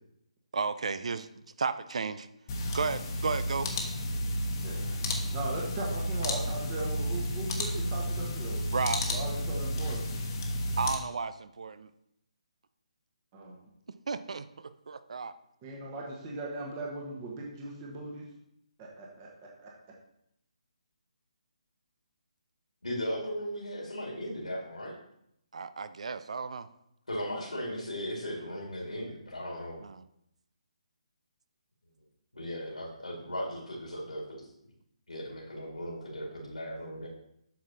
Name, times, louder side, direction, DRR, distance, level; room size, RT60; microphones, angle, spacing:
voice 1, 0.5-2.3 2.7-3.6 8.7-9.0 10.8-11.9 14.1-15.3 25.5-26.7 29.8-30.0, right 5 dB, 60° right, 13 dB, 0.5 m, -33 dB
sound 1, 2.5-10.9, left 1 dB, 35° left, 1.1 m, -32 dB
voice 2, 5.3-8.6 9.1-10.2 13.3-13.6 15.6-18.2 18.8-19.3 19.6-19.7, right 2 dB, 25° right, -2 dB, 1.3 m, -38 dB
voice 3, 22.8-25.0 27.1-29.8 32.3-34.5 35.1-37.1, equal, 85° left, -2 dB, 2.1 m, -37 dB
8.4 x 6.2 x 2.8 m, 0.77 s
figure-of-eight pair, 145°, 4 cm